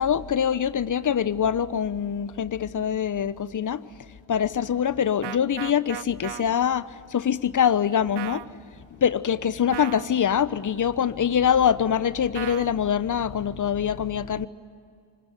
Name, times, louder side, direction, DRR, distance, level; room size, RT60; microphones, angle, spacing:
voice 1, 0.0-3.9 4.3-8.5 9.0-14.5, left 8 dB, 45° left, 1.1 m, -24 dB
sound 1, 5.2-6.4 8.2-8.5 9.7-10.1 12.3-12.7, right 15 dB, 65° right, 0.8 m, -35 dB
25.0 x 21.5 x 9.3 m
hypercardioid pair, 50°, 44 cm